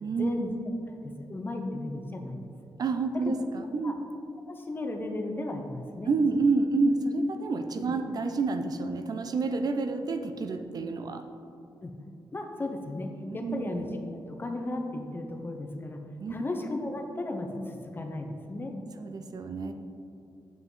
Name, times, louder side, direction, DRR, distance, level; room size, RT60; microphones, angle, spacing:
voice 1, 0.2-0.5 1.0-2.4 3.3-3.4 3.8-3.9 4.5-6.1 7.9-8.0 11.8-11.9 12.3-13.9 14.3-16.0 16.3-18.7, left 2 dB, 25° left, 4 dB, 0.7 m, -35 dB
voice 2, 2.8-4.0 6.1-11.2 13.3-13.7 16.2-16.3 19.0-19.7, right 3 dB, 55° right, 7 dB, 0.5 m, -28 dB
7.5 x 5.7 x 3.8 m, 2.6 s
wide cardioid pair, 125°, 8 cm